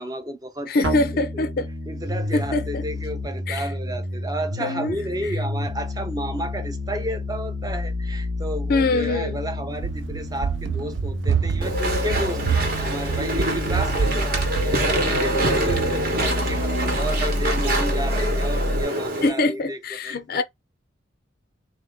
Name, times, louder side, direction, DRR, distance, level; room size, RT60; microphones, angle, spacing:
voice 1, 0.0-1.5 1.9-20.4, right 1 dB, 20° right, 0.6 m, -32 dB
voice 2, 0.7-1.7 2.3-2.8 3.5-3.6 4.6-4.9 8.7-9.4 19.2-20.4, left 2 dB, 50° left, 0.4 m, -23 dB
sound 1, 0.8-18.8, left 1 dB, 90° right, 1.4 m, -29 dB
Run, 9.7-16.8, right 7 dB, 75° right, 0.4 m, -28 dB
Walk footsteps / Chatter / Squeak, 11.6-19.3, right 1 dB, 50° right, 1.1 m, -25 dB
3.1 x 2.7 x 3.5 m
head